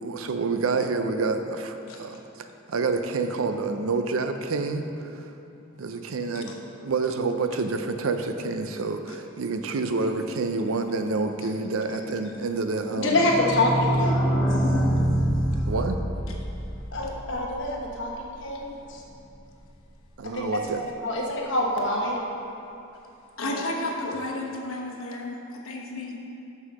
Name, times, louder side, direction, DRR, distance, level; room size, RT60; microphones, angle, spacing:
voice 1, 0.0-4.9 5.8-6.6 6.8-13.2 15.7-16.0 20.2-20.9, right 3 dB, 85° right, 7 dB, 0.5 m, -28 dB
sound 1, 12.8-18.3 18.6-18.7 18.9-19.0 19.3-19.4, equal, 15° left, 0.7 m, -26 dB
voice 2, 13.0-14.4 16.9-19.0 20.3-20.5 20.8-22.1 23.4-23.6 24.0-24.1, left 1 dB, 60° left, -2 dB, 1.2 m, -26 dB
voice 3, 23.4-26.2, left 2 dB, 90° left, -1 dB, 1.1 m, -32 dB
6.5 x 5.5 x 6.2 m, 2.7 s
head